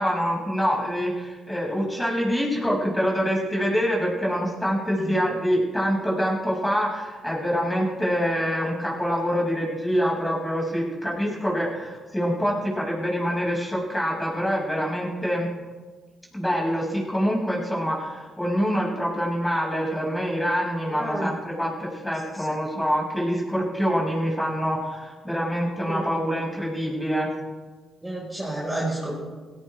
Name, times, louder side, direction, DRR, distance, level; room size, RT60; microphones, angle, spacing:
voice 1, 0.0-15.5 16.3-27.3, equal, 10° left, -4 dB, 6.3 m, -25 dB
voice 2, 20.9-21.3 22.3-22.4 25.9-26.1 28.0-29.2, right 1 dB, 10° right, -5 dB, 5.0 m, -30 dB
18.0 x 17.0 x 3.5 m, 1.4 s
cardioid pair, 90°, 0 cm